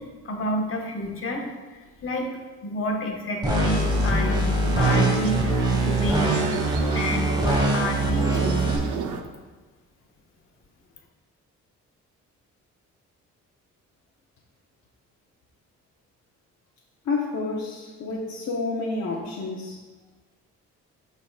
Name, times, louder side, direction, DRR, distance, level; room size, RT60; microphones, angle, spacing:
voice 1, 0.0-1.4 1.7-2.3 2.6-6.4 6.9-8.8, left 1 dB, 45° left, 0 dB, 1.3 m, -30 dB
sound 1, 3.4-8.8, right 2 dB, 15° right, 1.6 m, -23 dB
sound 2, 3.7-9.2, right 6 dB, 80° right, 0.7 m, -33 dB
voice 2, 17.1-19.7, left 3 dB, 65° left, -3 dB, 1.0 m, -29 dB
11.5 x 4.0 x 2.4 m, 1.3 s
cardioid pair, 90°, 30 cm